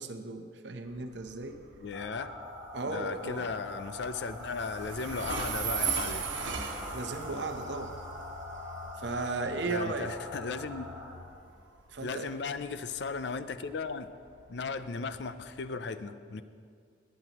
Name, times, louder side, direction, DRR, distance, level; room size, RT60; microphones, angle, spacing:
voice 1, 0.0-1.6 2.7-3.5 6.9-7.9 9.0-10.1 11.9-12.3, right 3 dB, 65° right, 6 dB, 0.8 m, -35 dB
Train, 0.9-15.6, right 6 dB, 90° right, 1.1 m, -40 dB
voice 2, 1.8-2.3 2.9-6.3 9.6-10.9 12.0-14.1 14.5-16.4, left 4 dB, 65° left, 11 dB, 0.5 m, -36 dB
sound 1, 1.9-11.1, left 1 dB, 10° right, 1.5 m, -43 dB
19.0 x 9.2 x 3.0 m, 2.3 s
head